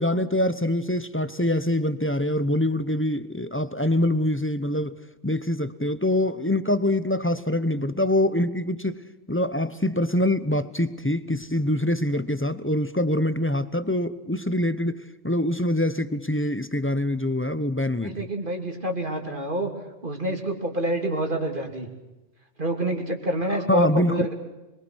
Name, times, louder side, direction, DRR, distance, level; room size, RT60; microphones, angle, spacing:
voice 1, 0.0-9.0 9.3-18.3 23.7-24.3, left 1 dB, 10° left, 13 dB, 0.8 m, -24 dB
voice 2, 18.0-19.7 20.0-21.9 22.6-24.3, right 1 dB, 45° right, 3 dB, 3.1 m, -27 dB
26.0 x 23.0 x 6.3 m, 1.0 s
omnidirectional pair, 1.2 m